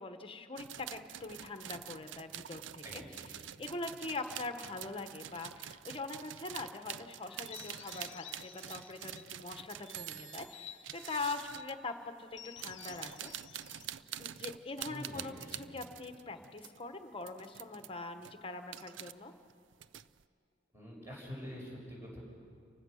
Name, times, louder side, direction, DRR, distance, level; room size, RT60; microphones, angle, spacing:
voice 1, 0.0-3.0 3.6-13.3 14.2-19.3, left 3 dB, 30° left, 7 dB, 1.2 m, -43 dB
sound 1, 0.6-11.8 12.4-16.8 17.2-17.9 18.2-19.1 19.5-20.2, right 11 dB, 75° right, 0.5 m, -46 dB
voice 2, 2.8-3.3 14.9-15.6 20.7-22.2, equal, 15° right, -3 dB, 5.9 m, -46 dB
sound 2, 7.3-9.4 9.8-11.7 12.3-14.8, left 10 dB, 70° left, 0.8 m, -53 dB
29.5 x 16.0 x 6.4 m, 2.4 s
head